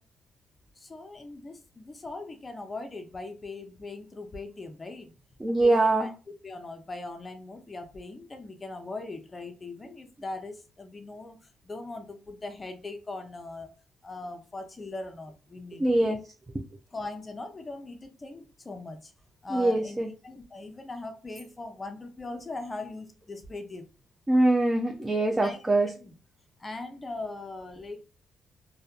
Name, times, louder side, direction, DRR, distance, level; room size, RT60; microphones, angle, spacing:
voice 1, 0.8-5.1 5.6-6.1 6.4-11.4 11.6-13.7 14.0-16.2 16.9-19.1 19.4-23.9 25.3-25.6 26.0-26.1 26.6-28.0, left 2 dB, 25° left, 6 dB, 0.6 m, -40 dB
voice 2, 5.4-6.1 15.8-16.2 19.5-20.1 24.3-25.9, right 2 dB, 20° right, 3 dB, 0.4 m, -23 dB
2.5 x 2.2 x 2.3 m, 0.33 s
cardioid pair, 80°, 0 cm